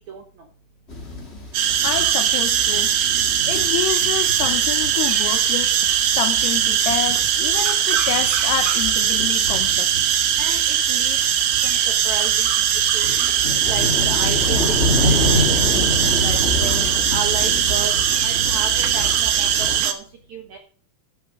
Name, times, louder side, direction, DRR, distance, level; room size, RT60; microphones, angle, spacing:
sound 1, 0.9-19.8, left 1 dB, 25° left, 1.6 m, -28 dB
sound 2, 1.5-19.9, right 9 dB, 85° right, 1.8 m, -20 dB
voice 1, 1.8-2.9 3.5-5.7 6.1-10.1, left 10 dB, 80° left, 2.4 m, -28 dB
voice 2, 10.4-11.2 11.6-11.8 12.0-12.6 12.9-13.3 13.7-14.6 14.9-15.6 15.9-16.8 17.1-17.9 18.2-20.0 20.3-20.6, right 5 dB, 70° right, 1.7 m, -33 dB
14.0 x 6.3 x 5.2 m
omnidirectional pair, 5.3 m